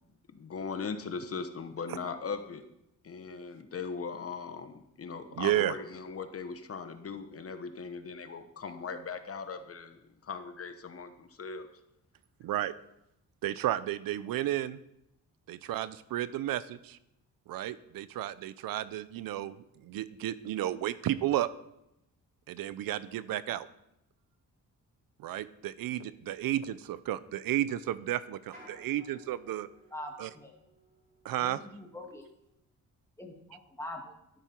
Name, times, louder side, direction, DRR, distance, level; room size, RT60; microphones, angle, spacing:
voice 1, 0.3-2.6 3.0-11.7, left 5 dB, 45° left, 8 dB, 1.1 m, -39 dB
voice 2, 5.4-5.7 12.4-12.7 13.4-14.8 15.5-17.0 17.5-19.6 19.8-21.5 22.5-23.7 25.2-29.7 30.2-30.3 31.2-31.6, right 13 dB, 90° right, 16 dB, 0.7 m, -32 dB
sound 1, 25.6-32.5, equal, 30° right, 5.7 m, -60 dB
voice 3, 29.9-30.5 31.4-32.2 33.2-34.1, left 1 dB, 10° left, 1 dB, 2.4 m, -43 dB
13.0 x 12.0 x 4.5 m, 0.84 s
cardioid pair, 125°, 33 cm